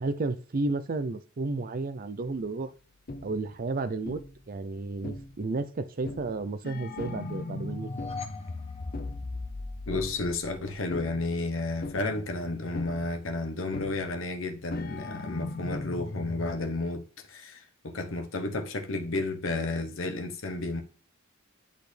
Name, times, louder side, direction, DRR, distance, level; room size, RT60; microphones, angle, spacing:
voice 1, 0.0-2.7 3.2-7.9, right 3 dB, 45° right, 0.5 m, -32 dB
sound 1, 2.2-2.5 3.1-3.6 4.0-4.4 5.0-5.5 6.0-11.4 11.8-12.3 12.7-13.2 13.7-14.2 14.7-16.6, left 2 dB, 45° left, 0.6 m, -38 dB
sound 2, 7.6-9.9, left 4 dB, 30° left, 1.1 m, -44 dB
voice 2, 9.9-20.8, left 2 dB, 65° left, 1.0 m, -32 dB
10.5 x 4.1 x 3.3 m
head